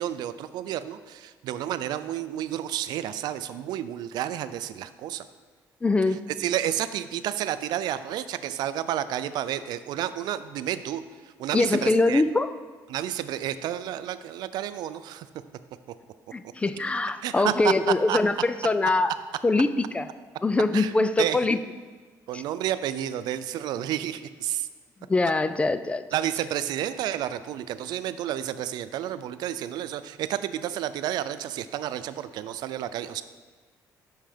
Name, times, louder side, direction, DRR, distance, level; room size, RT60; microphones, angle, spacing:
voice 1, 0.0-5.2 6.4-11.0 11.4-12.2 12.9-15.3 17.2-17.7 18.1-18.2 20.7-20.9 21.2-21.4 22.3-24.7 26.1-33.2, right 11 dB, 75° right, 13 dB, 0.4 m, -30 dB
voice 2, 5.8-6.2 11.5-12.5 16.3-19.1 19.4-20.1 20.4-21.6 25.1-26.0, left 3 dB, 15° left, 11 dB, 0.3 m, -23 dB
6.4 x 5.6 x 5.0 m, 1.5 s
cardioid pair, 120°, 7 cm